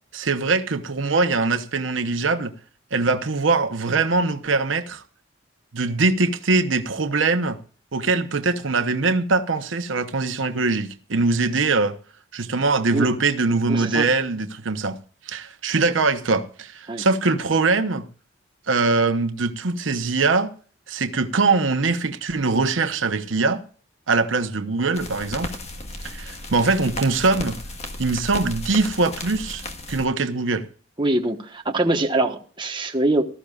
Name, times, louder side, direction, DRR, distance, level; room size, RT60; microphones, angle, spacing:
voice 1, 0.1-2.5 2.9-5.0 5.7-7.6 7.9-11.9 12.3-15.0 15.2-18.1 18.7-20.5 20.9-23.6 24.1-25.5 26.0-27.6 28.0-29.6 29.9-30.7, right 3 dB, 85° right, 1.0 m, -22 dB
voice 2, 13.7-14.0 16.9-17.1 31.0-33.2, right 2 dB, 25° right, 1.3 m, -23 dB
sound 1, 24.9-30.1, left 2 dB, 35° left, 1.5 m, -35 dB
18.0 x 13.5 x 2.4 m
head